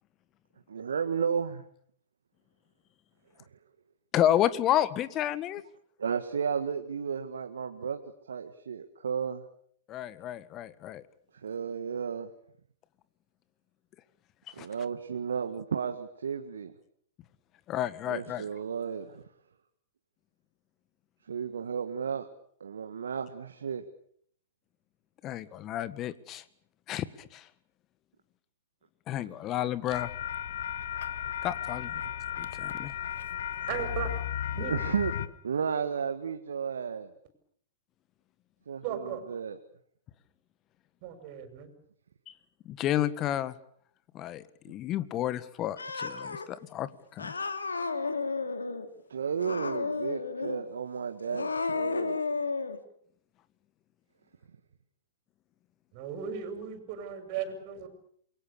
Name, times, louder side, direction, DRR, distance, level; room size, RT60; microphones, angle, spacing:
voice 1, 0.7-1.6 6.0-8.0 8.3-9.5 11.3-12.3 14.5-16.7 18.1-19.2 21.3-22.3 22.6-23.8 29.2-29.3 32.0-32.1 34.6-35.1 35.4-37.1 38.7-39.6 49.1-52.2, right 6 dB, 75° right, 8 dB, 1.7 m, -33 dB
voice 2, 4.1-5.6 9.9-11.0 14.5-14.7 17.7-18.4 25.2-26.4 26.9-27.4 29.1-30.1 31.4-32.0 32.4-32.9 42.3-42.4 42.7-43.5 44.1-47.3, left 12 dB, 30° left, 16 dB, 1.6 m, -31 dB
sound 1, 29.9-35.3, left 10 dB, 65° left, 1.6 m, -34 dB
voice 3, 33.7-34.1 34.6-34.7 38.8-39.2 41.0-41.7 55.9-57.9, right 8 dB, 45° right, 8 dB, 6.4 m, -36 dB
Cat, 45.8-46.5 47.2-48.9 49.4-50.6 51.2-52.8, left 4 dB, 85° left, 2.6 m, -32 dB
28.5 x 22.5 x 7.1 m, 0.64 s
figure-of-eight pair, 110°, 0 cm